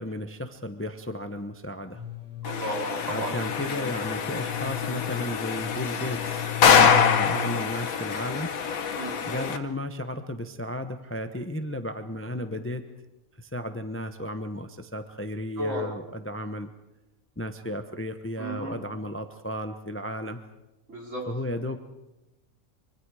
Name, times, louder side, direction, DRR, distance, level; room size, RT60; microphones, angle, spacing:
voice 1, 0.0-2.0 3.1-8.5 9.3-12.8 13.4-16.7 17.4-20.4 21.3-21.8, left 1 dB, 10° left, 8 dB, 0.8 m, -34 dB
sound 1, 1.9-7.9, left 10 dB, 5° right, 5.5 m, -36 dB
sound 2, 2.4-9.6, left 6 dB, 80° left, 1.5 m, -25 dB
voice 2, 2.4-3.3 9.0-9.2 15.6-15.9 18.4-18.7 20.9-21.3, right 1 dB, 60° right, -2 dB, 4.6 m, -33 dB
25.0 x 24.0 x 4.9 m, 0.96 s
omnidirectional pair, 1.5 m